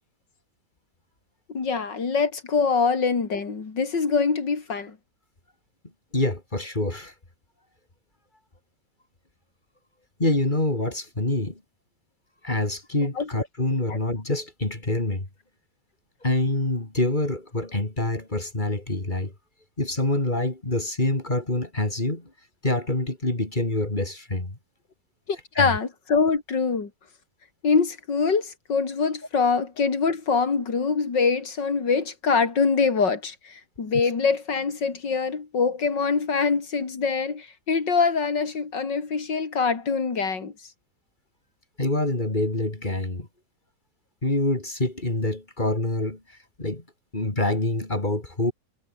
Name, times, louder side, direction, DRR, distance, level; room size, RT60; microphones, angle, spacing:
voice 1, 1.5-5.0 13.2-13.3 13.9-14.0 25.3-26.9 27.6-40.5, left 5 dB, 75° left, 3.8 m, -24 dB
voice 2, 6.1-7.1 10.2-11.6 12.4-15.3 16.2-19.3 19.8-22.3 22.6-24.6 25.6-25.8 41.8-43.3 44.2-46.8 47.1-48.5, left 2 dB, 25° left, 3.6 m, -26 dB
omnidirectional pair, 1.9 m